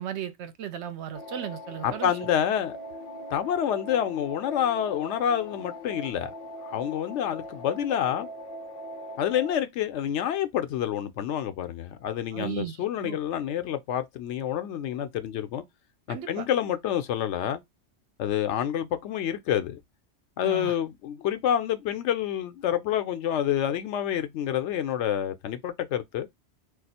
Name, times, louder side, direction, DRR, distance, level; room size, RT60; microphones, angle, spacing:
voice 1, 0.0-2.1 12.3-13.2 16.1-16.5 20.4-20.7, right 9 dB, 80° right, 0.9 m, -36 dB
sound 1, 1.1-9.5, equal, 60° left, 0.8 m, -41 dB
voice 2, 1.8-2.8 3.3-6.3 6.6-8.3 9.2-15.6 16.1-17.6 18.2-19.8 20.4-26.3, left 10 dB, 90° left, 0.9 m, -28 dB
2.5 x 2.4 x 4.1 m
omnidirectional pair, 1.1 m